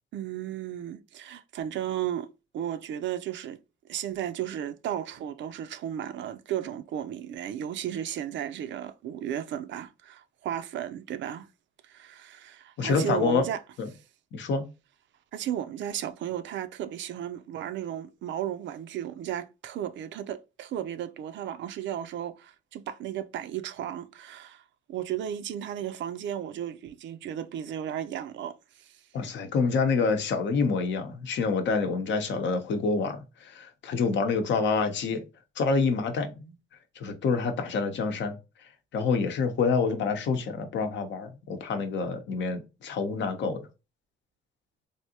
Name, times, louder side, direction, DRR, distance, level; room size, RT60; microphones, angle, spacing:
voice 1, 0.1-2.3 2.5-3.6 3.9-11.5 11.8-13.6 15.3-24.6 24.9-29.0, right 10 dB, 70° right, 0.4 m, -34 dB
voice 2, 12.8-13.4 13.8-13.9 14.3-14.6 29.1-35.2 35.6-36.5 37.0-38.4 38.9-43.6, left 4 dB, 65° left, 0.7 m, -27 dB
3.3 x 2.6 x 2.8 m
cardioid pair, 90°, 20 cm